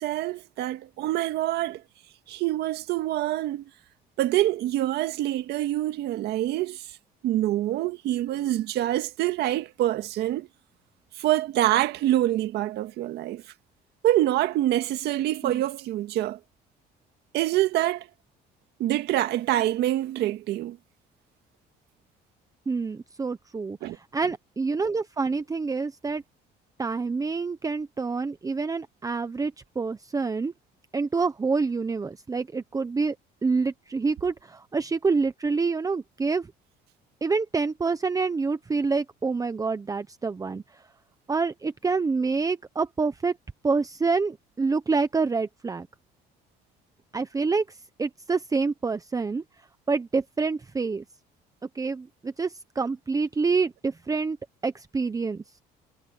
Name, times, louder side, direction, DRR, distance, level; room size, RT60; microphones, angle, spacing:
voice 1, 0.0-1.8 2.3-3.6 4.2-6.9 7.2-10.5 11.2-13.4 14.0-16.4 17.3-18.1 18.8-20.8 23.8-24.0, right 14 dB, 80° right, 1.8 m, -26 dB
voice 2, 22.7-23.8 24.1-26.2 26.8-30.5 30.9-33.1 33.4-36.5 37.2-40.6 41.3-43.3 43.6-45.9 47.1-47.6 48.0-49.4 49.9-51.0 51.7-54.4 54.6-55.4, right 4 dB, 20° right, 0.9 m, -27 dB
cardioid pair, 110°, 17 cm